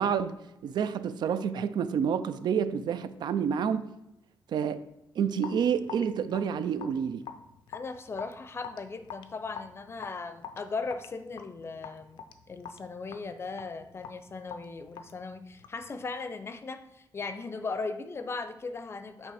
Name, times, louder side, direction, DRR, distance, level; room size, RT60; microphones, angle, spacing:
voice 1, 0.0-3.9 4.5-4.8 5.2-7.3, right 7 dB, 65° right, 13 dB, 0.4 m, -29 dB
Raindrop / Drip, 5.4-15.9, left 7 dB, 85° left, 0.6 m, -46 dB
voice 2, 7.7-12.2 12.5-19.3, left 4 dB, 30° left, 9 dB, 0.5 m, -38 dB
8.4 x 3.2 x 4.9 m, 0.89 s
cardioid pair, 120°, 8 cm